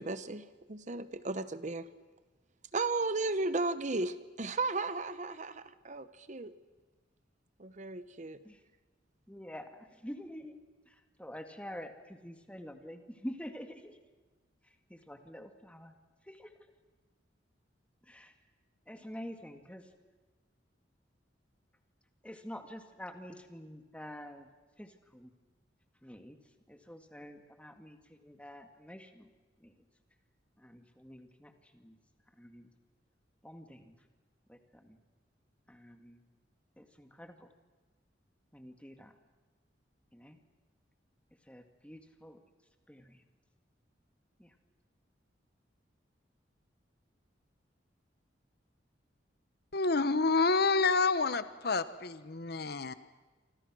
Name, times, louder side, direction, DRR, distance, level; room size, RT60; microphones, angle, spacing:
voice 1, 0.0-1.9 2.7-6.5 7.6-8.4, right 3 dB, 40° right, 13 dB, 0.9 m, -35 dB
voice 2, 9.3-10.6 10.9-14.0 14.6-15.9 16.2-16.5 18.0-18.3 18.9-19.9 22.2-24.5 24.8-25.3 26.0-26.4 26.7-29.3 29.6-29.7 30.6-32.0 32.3-32.7 33.4-34.0 34.5-35.0 35.7-36.2 36.8-37.5 38.5-39.1 40.1-40.4 41.4-42.4 42.9-43.2 44.4-44.6, equal, 5° left, 6 dB, 2.0 m, -47 dB
voice 3, 49.7-52.9, left 4 dB, 60° left, 13 dB, 1.0 m, -28 dB
28.5 x 26.0 x 6.3 m, 1.3 s
head